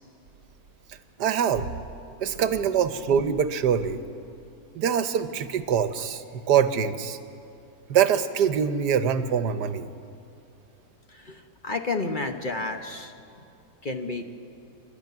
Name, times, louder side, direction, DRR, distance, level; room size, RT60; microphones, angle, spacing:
voice 1, 1.2-1.7 2.2-4.0 4.7-7.2 7.9-9.9, right 8 dB, 85° right, 11 dB, 1.5 m, -24 dB
voice 2, 11.1-13.1 13.8-14.2, left 3 dB, 35° left, 5 dB, 1.1 m, -31 dB
28.5 x 12.0 x 9.4 m, 2.6 s
omnidirectional pair, 1.7 m